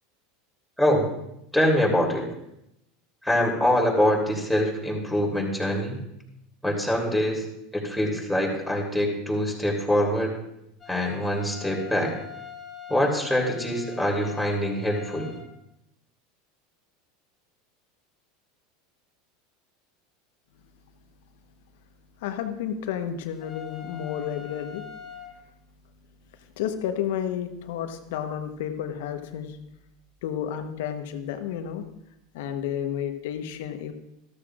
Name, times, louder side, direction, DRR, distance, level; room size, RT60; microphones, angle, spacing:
voice 1, 0.8-1.1 1.5-2.3 3.2-6.0 6.6-7.4 7.7-10.3 10.9-12.1 12.9-15.3, equal, ahead, -1 dB, 3.0 m, -24 dB
sound 1, 10.8-15.5 23.4-25.3, left 8 dB, 25° left, 2.6 m, -43 dB
voice 2, 22.2-24.8 26.6-29.6 30.2-31.8 32.3-33.9, left 9 dB, 70° left, 7 dB, 1.1 m, -31 dB
13.5 x 13.0 x 2.5 m, 0.82 s
hypercardioid pair, 90°, 0 cm